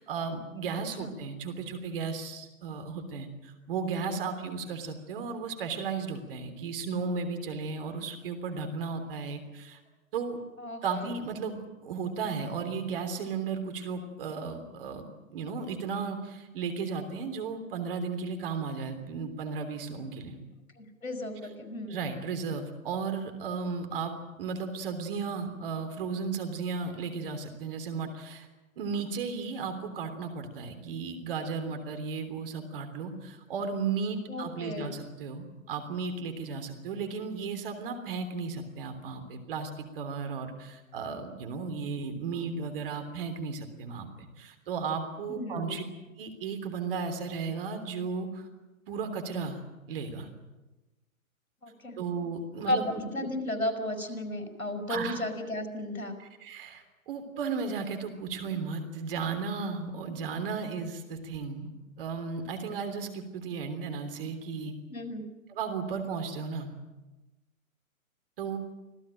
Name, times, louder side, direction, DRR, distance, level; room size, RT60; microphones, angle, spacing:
voice 1, 0.0-9.8 10.1-10.4 10.8-20.4 21.9-28.5 28.8-45.8 46.2-48.5 48.9-49.6 49.9-50.3 52.0-53.0 54.9-55.2 56.2-61.7 62.0-64.7 65.5-66.8 68.4-68.6, right 5 dB, 40° right, 7 dB, 3.4 m, -35 dB
voice 2, 10.6-11.1 20.8-21.9 34.3-34.9 45.3-45.6 51.6-52.0 52.7-56.2 64.9-65.2, left 1 dB, 75° left, 6 dB, 5.8 m, -34 dB
26.0 x 17.0 x 9.0 m, 1.1 s
figure-of-eight pair, 120°, 42 cm